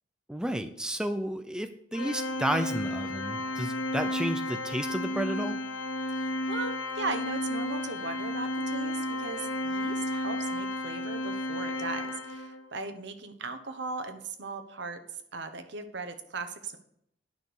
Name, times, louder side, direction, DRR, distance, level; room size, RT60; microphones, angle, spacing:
voice 1, 0.3-5.6, right 1 dB, 5° right, 8 dB, 0.5 m, -32 dB
Organ, 1.9-12.7, left 1 dB, 80° left, 0.8 m, -33 dB
voice 2, 6.1-15.0 15.3-16.8, right 3 dB, 65° right, 8 dB, 1.1 m, -38 dB
9.5 x 6.0 x 6.5 m, 0.71 s
head